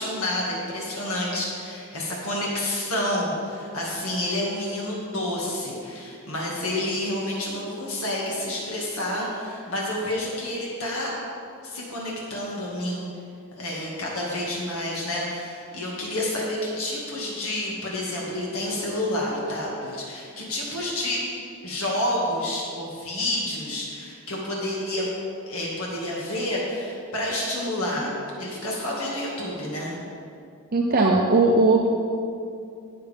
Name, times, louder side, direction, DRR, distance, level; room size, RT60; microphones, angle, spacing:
voice 1, 0.0-11.1 11.6-13.1 13.5-21.2 21.6-25.1 25.5-28.1 28.4-30.0, left 1 dB, 70° left, -4 dB, 2.1 m, -29 dB
voice 2, 30.7-31.9, right 3 dB, 45° right, -1 dB, 0.8 m, -18 dB
18.5 x 6.7 x 3.5 m, 2.5 s
head